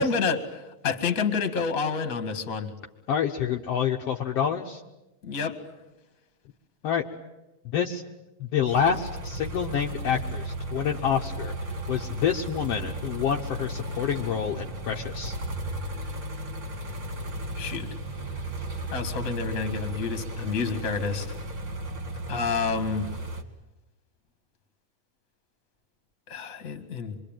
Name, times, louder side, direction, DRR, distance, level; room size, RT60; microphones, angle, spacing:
voice 1, 0.0-2.7 5.2-5.6 17.6-17.9 18.9-21.3 22.3-23.1 26.3-27.1, left 5 dB, 30° left, 8 dB, 1.6 m, -29 dB
voice 2, 3.1-4.8 6.8-7.0 7.7-8.0 8.4-11.5 11.9-15.4, left 8 dB, 75° left, 2 dB, 1.4 m, -27 dB
sound 1, 8.7-23.4, right 1 dB, 35° right, 1.6 m, -35 dB
25.5 x 23.0 x 9.0 m, 1.0 s
omnidirectional pair, 4.2 m